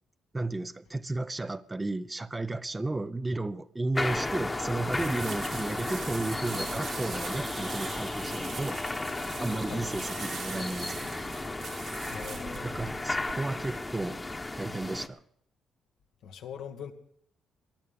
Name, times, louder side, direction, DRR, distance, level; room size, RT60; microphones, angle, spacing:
voice 1, 0.3-8.8 9.4-11.0 12.6-14.2 14.5-15.2, right 2 dB, 20° right, 0.7 m, -33 dB
sound 1, 3.9-15.1, left 2 dB, 20° left, 1.3 m, -34 dB
sound 2, 4.8-13.3, right 6 dB, 65° right, 2.0 m, -42 dB
voice 2, 12.1-13.3 16.2-16.9, left 8 dB, 80° left, 1.7 m, -43 dB
19.0 x 11.5 x 5.3 m
cardioid pair, 90°, 0 cm